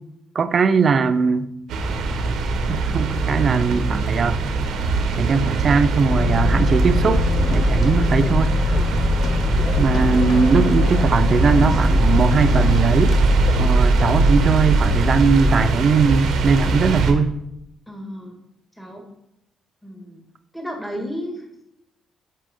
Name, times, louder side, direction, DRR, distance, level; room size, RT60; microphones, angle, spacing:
voice 1, 0.3-1.5 2.7-4.4 5.2-8.6 9.8-13.2 13.6-17.3, right 5 dB, 45° right, 11 dB, 0.6 m, -19 dB
sound 1, 1.7-17.1, right 4 dB, 80° right, 1.2 m, -22 dB
sound 2, 6.0-15.7, left 3 dB, 85° left, 2.0 m, -22 dB
sound 3, 6.9-15.3, left 4 dB, 50° left, 0.6 m, -34 dB
voice 2, 17.9-18.4 18.8-19.1 19.8-20.2 20.5-21.5, equal, ahead, 0 dB, 2.0 m, -33 dB
8.2 x 6.7 x 3.7 m, 0.82 s
cardioid pair, 90°, 0 cm